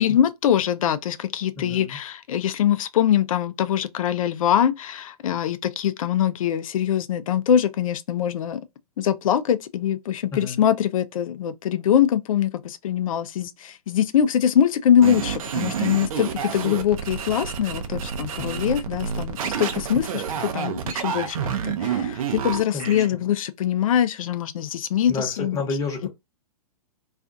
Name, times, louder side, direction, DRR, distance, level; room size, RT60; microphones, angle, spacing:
voice 1, 0.0-8.6 9.0-25.6 26.0-26.1, left 9 dB, 60° left, 0.4 m, -23 dB
voice 2, 1.6-2.0 10.3-10.6 18.4-18.8 22.7-23.2 25.1-26.1, left 3 dB, 15° left, 0.9 m, -31 dB
sound 1, 15.0-23.1, right 7 dB, 60° right, 0.6 m, -29 dB
2.4 x 2.4 x 2.5 m
figure-of-eight pair, 115°, 20 cm